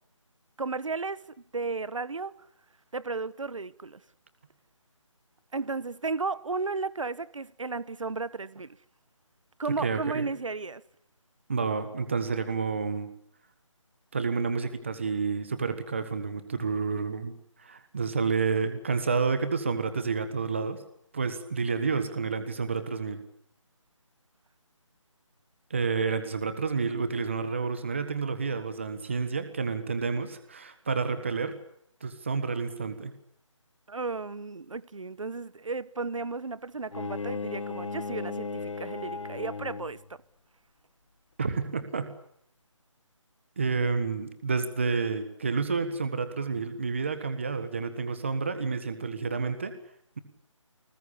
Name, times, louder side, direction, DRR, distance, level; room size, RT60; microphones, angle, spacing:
voice 1, 0.6-1.2 1.5-2.3 2.9-4.0 5.5-8.8 9.6-10.8 33.9-40.2, right 4 dB, 75° right, 1.3 m, -34 dB
voice 2, 9.7-10.3 11.5-13.1 14.1-17.3 17.6-20.8 21.1-23.2 25.7-31.6 32.0-33.1 41.4-42.1 43.6-49.7, right 5 dB, 25° right, 1.5 m, -29 dB
Bowed string instrument, 36.9-40.1, left 4 dB, 70° left, 1.2 m, -36 dB
29.0 x 20.0 x 8.5 m
figure-of-eight pair, 180°, 17 cm